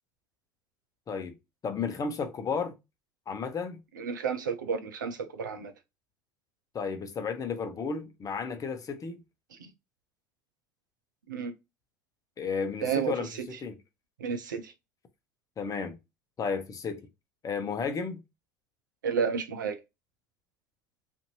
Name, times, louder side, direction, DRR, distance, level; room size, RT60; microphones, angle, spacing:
voice 1, 1.6-2.7 3.3-3.8 6.7-9.2 12.4-13.3 13.6-13.7 15.6-16.0 16.4-17.0 17.4-18.2, left 5 dB, 35° left, 0.7 m, -33 dB
voice 2, 4.0-5.7 9.6-9.7 11.3-11.5 12.8-13.5 14.2-14.7 19.0-19.8, right 6 dB, 90° right, 0.5 m, -31 dB
2.6 x 2.5 x 2.9 m
hypercardioid pair, 70°, 10 cm